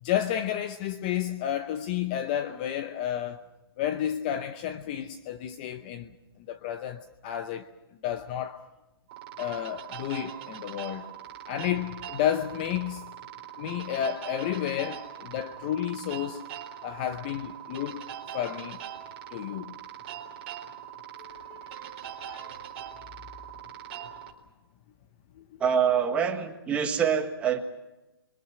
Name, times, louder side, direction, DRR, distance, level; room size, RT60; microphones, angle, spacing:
voice 1, 0.0-3.4 3.8-6.1 6.5-7.7 8.0-8.6 9.4-11.0 11.5-13.0 13.6-16.4 16.8-18.0 18.3-18.8 19.3-19.8 21.2-22.5 25.4-25.6, left 10 dB, 20° left, 0.8 m, -31 dB
sound 1, 9.1-24.3, right 10 dB, 25° right, 4.2 m, -42 dB
voice 2, 25.6-27.6, right 7 dB, 10° right, 1.6 m, -25 dB
28.5 x 24.0 x 6.0 m
hypercardioid pair, 170°, 13 cm